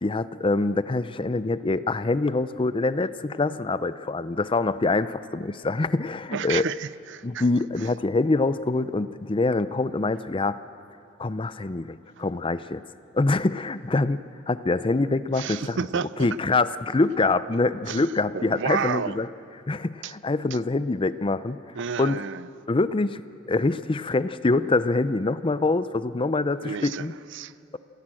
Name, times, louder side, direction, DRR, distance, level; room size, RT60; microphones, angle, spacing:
voice 1, 0.0-6.6 7.2-10.6 11.2-12.8 13.1-15.8 16.2-19.3 19.7-21.6 22.0-22.2 22.7-23.2 23.5-27.1, left 3 dB, 25° left, 0.5 m, -25 dB
voice 2, 6.3-7.4 15.3-16.3 17.9-18.1 18.3-19.2 20.0-20.1 21.8-22.5 26.6-27.1 27.3-27.8, right 6 dB, 65° right, 0.5 m, -31 dB
27.5 x 16.0 x 7.7 m
head